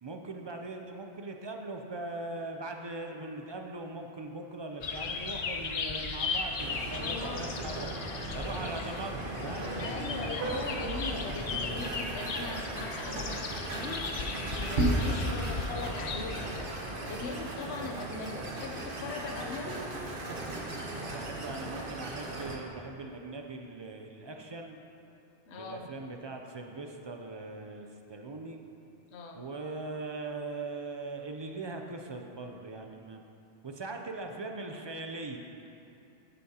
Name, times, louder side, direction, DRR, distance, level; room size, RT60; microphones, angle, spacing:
voice 1, 0.0-7.9 8.3-9.7 21.1-24.8 25.5-28.6 29.3-33.2 33.6-35.4, right 3 dB, 40° right, 3 dB, 0.4 m, -40 dB
sound 1, 4.8-16.6, left 4 dB, 50° left, 0.6 m, -37 dB
sound 2, 6.6-22.6, right 1 dB, 55° right, 1.2 m, -36 dB
voice 2, 7.0-7.5 9.8-14.1 14.6-19.9 25.5-25.9 29.1-29.4, left 3 dB, 75° left, 3 dB, 1.0 m, -40 dB
10.0 x 9.3 x 2.9 m, 2.7 s
omnidirectional pair, 1.1 m